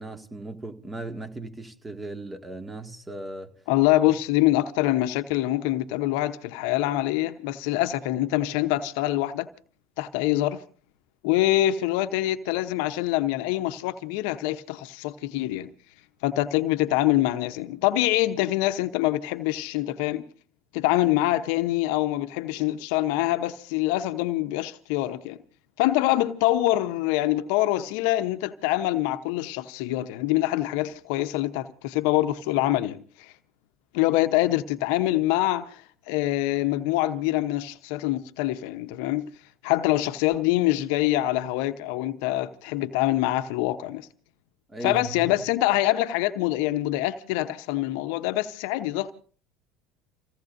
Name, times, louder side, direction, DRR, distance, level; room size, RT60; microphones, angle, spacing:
voice 1, 0.0-3.5 44.7-45.4, right 2 dB, 15° right, 1.9 m, -37 dB
voice 2, 3.7-9.5 10.0-10.6 11.2-15.7 16.2-20.2 20.7-25.4 25.8-33.3 33.9-39.3 39.6-44.1 44.8-49.1, left 15 dB, 75° left, 0.9 m, -25 dB
29.0 x 17.0 x 2.6 m
hypercardioid pair, 80°, 0 cm